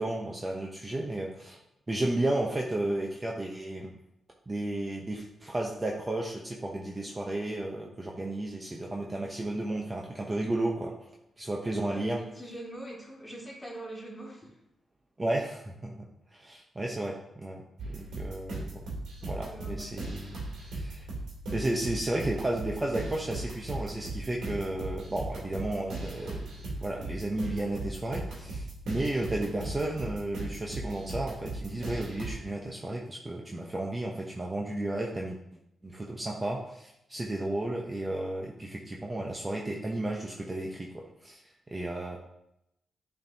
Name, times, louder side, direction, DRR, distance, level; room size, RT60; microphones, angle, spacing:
voice 1, 0.0-1.6 1.9-3.9 4.5-11.1 11.4-12.2 15.2-15.9 16.3-18.8 19.2-21.1 21.5-26.5 26.8-35.4 35.8-41.4 41.7-42.2, right 1 dB, 25° right, -1 dB, 0.9 m, -33 dB
voice 2, 11.9-14.6 19.2-20.1, right 1 dB, 10° left, -4 dB, 2.6 m, -43 dB
sound 1, 17.8-32.3, right 2 dB, 85° right, 2.4 m, -38 dB
9.4 x 4.5 x 2.8 m, 0.83 s
cardioid pair, 70°, 0 cm